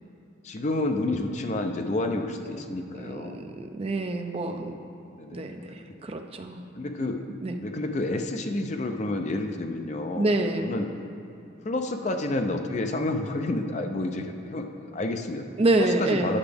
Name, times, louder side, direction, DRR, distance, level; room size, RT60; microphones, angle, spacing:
voice 1, 0.4-3.4 5.1-5.4 6.7-7.2 7.6-10.3 10.6-10.9 11.6-15.5 15.8-16.4, left 2 dB, 35° left, 5 dB, 0.4 m, -29 dB
voice 2, 3.0-4.8 5.3-6.6 7.4-7.6 10.2-10.7 15.6-16.4, right 2 dB, 30° right, 5 dB, 0.4 m, -27 dB
9.6 x 5.8 x 3.4 m, 2.8 s
head